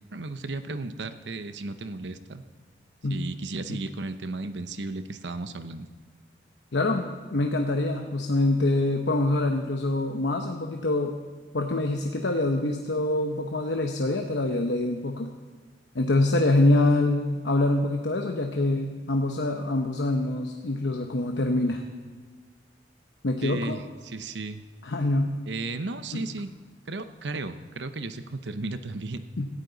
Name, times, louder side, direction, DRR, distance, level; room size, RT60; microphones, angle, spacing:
voice 1, 0.1-2.4 3.1-5.9 23.4-24.6 25.5-26.5 26.9-29.2, right 3 dB, 75° right, 10 dB, 0.8 m, -34 dB
voice 2, 6.7-11.1 11.5-15.3 15.9-21.8 23.2-23.8 24.8-25.3 26.1-26.2 29.4-29.5, left 2 dB, 75° left, 3 dB, 0.9 m, -25 dB
17.5 x 13.5 x 4.0 m, 1.5 s
head